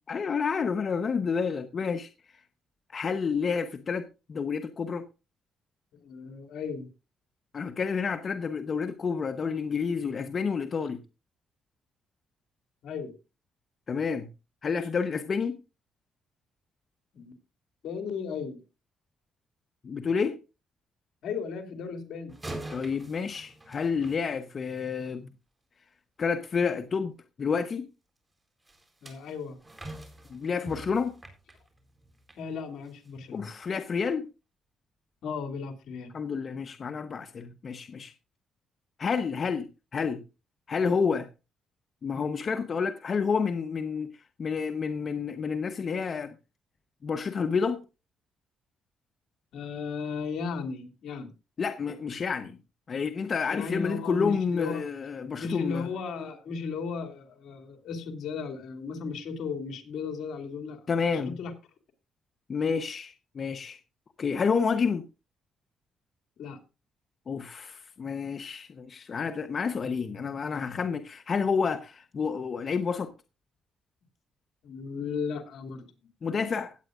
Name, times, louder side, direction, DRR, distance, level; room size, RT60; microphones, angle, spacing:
voice 1, 0.1-2.1 2.9-5.0 7.5-11.0 13.9-14.3 14.6-15.5 19.8-20.4 22.7-25.3 26.2-27.1 27.4-27.9 30.3-31.1 33.3-34.2 36.1-38.1 39.0-39.7 39.9-40.2 40.7-41.3 42.0-44.1 44.4-46.3 47.0-47.8 51.6-52.6 52.9-55.9 60.9-61.3 62.5-63.8 64.2-65.0 67.3-73.1 76.2-76.8, left 5 dB, 45° left, 1.0 m, -29 dB
voice 2, 5.9-6.9 12.8-13.1 17.1-17.3 17.8-18.6 21.2-22.4 29.0-29.6 32.4-33.5 35.2-36.1 49.5-51.3 53.5-54.8 55.4-60.9 61.1-61.5 66.4-66.6 74.6-75.9, left 5 dB, 75° left, 2.7 m, -35 dB
sound 1, 22.3-24.9 28.6-32.4 32.8-33.1 33.6-33.7, right 1 dB, 15° right, 4.0 m, -44 dB
17.0 x 8.9 x 2.5 m
cardioid pair, 90°, 0 cm